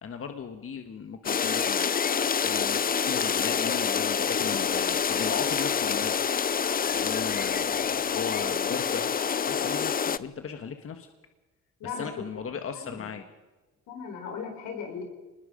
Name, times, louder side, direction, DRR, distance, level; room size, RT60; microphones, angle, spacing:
voice 1, 0.0-6.2 6.9-11.1 11.8-13.3, left 6 dB, 45° left, 6 dB, 1.5 m, -37 dB
sound 1, 1.2-10.2, left 7 dB, 30° left, 0.6 m, -27 dB
voice 2, 12.7-13.1 13.9-15.0, left 6 dB, 85° left, 3 dB, 4.9 m, -37 dB
25.5 x 20.0 x 5.2 m, 1.2 s
cardioid pair, 90°, 30 cm